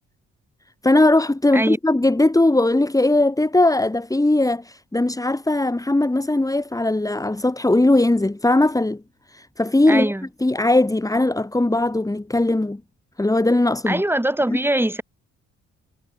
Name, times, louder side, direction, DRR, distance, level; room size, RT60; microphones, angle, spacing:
voice 1, 0.8-9.0 9.3-10.1 10.4-12.8 13.2-14.0 14.5-14.6, left 2 dB, 10° left, 4.2 m, -19 dB
voice 2, 9.9-10.3 13.9-15.0, right 1 dB, 5° right, 7.4 m, -22 dB
cardioid pair, 90°, 30 cm